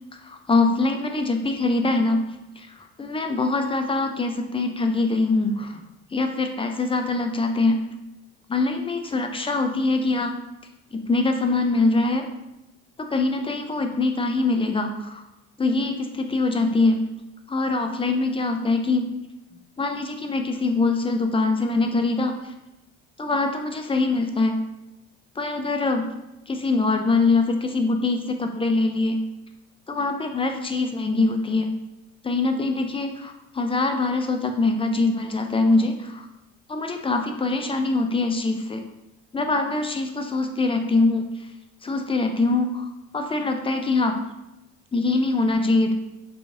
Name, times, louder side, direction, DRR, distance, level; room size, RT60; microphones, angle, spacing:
voice 1, 0.1-2.2 2.6-5.8 6.1-7.8 8.5-10.4 10.9-12.3 13.0-15.2 15.6-17.0 17.5-19.1 19.8-22.3 23.2-24.6 25.4-26.1 26.5-29.2 29.9-31.7 32.2-36.3 36.7-38.9 39.3-41.2 41.8-42.8 43.1-44.1 44.9-45.9, left 3 dB, 15° left, 5 dB, 0.4 m, -23 dB
3.8 x 3.0 x 2.5 m, 0.94 s
hypercardioid pair, 60°, 37 cm